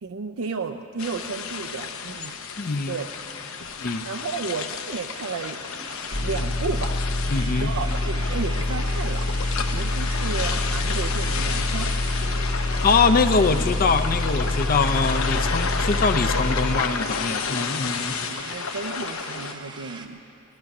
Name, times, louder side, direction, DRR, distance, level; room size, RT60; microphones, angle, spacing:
voice 1, 0.0-2.4 2.9-3.1 4.0-5.6 6.2-7.0 7.5-11.9 17.2-17.3 18.2-20.2, right 4 dB, 75° right, 6 dB, 0.5 m, -33 dB
sound 1, 1.0-19.5, left 5 dB, 75° left, 0.9 m, -31 dB
sound 2, 1.0-20.1, right 3 dB, 20° right, 0.8 m, -43 dB
voice 2, 2.6-2.9 3.8-4.1 7.3-7.7 12.8-18.2, left 4 dB, 45° left, 8 dB, 0.6 m, -23 dB
sound 3, 6.1-16.8, left 1 dB, 90° left, 1.6 m, -26 dB
16.5 x 14.0 x 6.0 m, 2.7 s
head